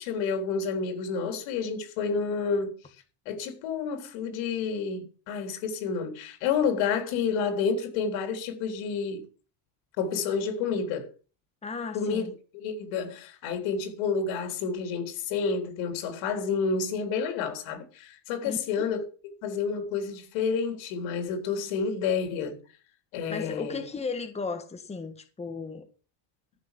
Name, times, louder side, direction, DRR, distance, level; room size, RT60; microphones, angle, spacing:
voice 1, 0.0-2.8 3.3-9.2 10.0-11.1 11.9-12.3 12.5-19.0 19.4-22.6 23.1-23.8, left 5 dB, 85° left, 3.9 m, -29 dB
voice 2, 11.6-12.3 18.4-18.9 23.3-25.9, left 4 dB, 15° left, 1.5 m, -35 dB
14.0 x 6.3 x 7.6 m
cardioid pair, 155°, 45 cm